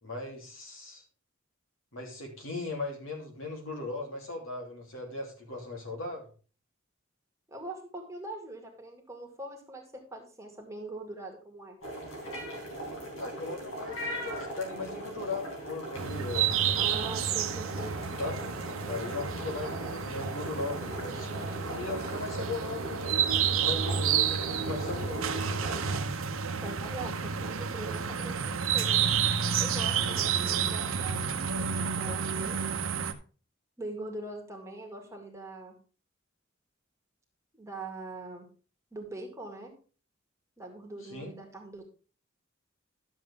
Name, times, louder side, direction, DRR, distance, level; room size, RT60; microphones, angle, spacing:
voice 1, 0.0-1.0 1.9-6.3 13.2-17.0 18.2-18.4 18.9-25.6 30.0-30.3 41.0-41.4, left 3 dB, 70° left, 1 dB, 3.0 m, -38 dB
voice 2, 7.5-11.8 16.8-17.9 26.6-29.0 29.6-31.3 31.9-32.6 33.8-35.8 37.5-38.5 38.9-39.7 40.6-41.8, right 2 dB, 15° right, 2 dB, 2.0 m, -42 dB
sound 1, 11.8-26.0, equal, 90° left, 4.3 m, -40 dB
sound 2, 16.0-33.1, right 7 dB, 85° right, 0.9 m, -30 dB
11.5 x 7.3 x 3.5 m, 0.37 s
head